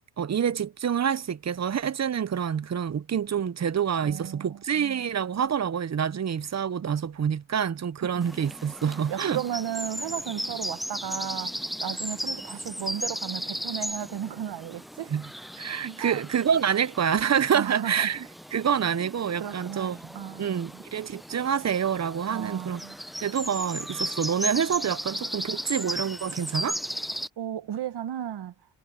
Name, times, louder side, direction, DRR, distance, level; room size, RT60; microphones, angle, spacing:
voice 1, 0.2-9.4 15.1-15.3 15.6-18.3 18.5-20.1 20.4-22.8 23.2-26.8, right 8 dB, 35° right, 1.2 m, -27 dB
voice 2, 4.0-5.0 9.1-11.5 11.8-15.1 16.0-16.2 17.5-18.1 19.4-20.6 22.3-23.0 27.4-28.5, right 10 dB, 55° right, 2.0 m, -35 dB
sound 1, 8.2-27.3, equal, ahead, 0.9 m, -36 dB
hypercardioid pair, 55°, 49 cm